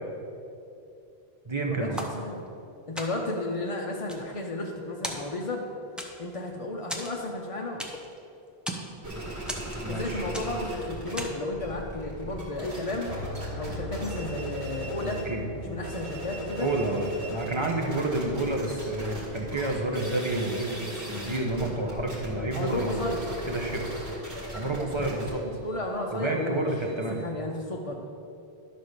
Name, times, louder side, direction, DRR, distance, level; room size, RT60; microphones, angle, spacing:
voice 1, 1.4-2.0 9.8-10.3 15.0-15.8 16.6-23.8 24.5-25.4 26.1-27.2, right 2 dB, 30° right, 1 dB, 1.0 m, -30 dB
sound 1, 2.0-2.6 3.0-3.4 3.9-4.8 5.0-5.6 6.0-6.4 6.9-8.2 8.5-8.9 9.5-10.0 10.3-10.7 11.2-11.5, equal, ahead, 0.7 m, -37 dB
voice 2, 2.9-5.6 6.2-7.8 9.9-13.1 13.5-15.2 15.5-16.7 22.5-23.2 25.1-25.2 25.6-26.7 27.1-28.0, left 2 dB, 40° left, -1 dB, 0.7 m, -33 dB
sound 2, 9.0-11.2 11.5-15.3 15.7-27.3, right 1 dB, 90° right, 2.6 m, -38 dB
Piano, 13.1-21.1, left 1 dB, 70° left, 1.1 m, -42 dB
11.5 x 4.2 x 6.5 m, 2.7 s
omnidirectional pair, 1.1 m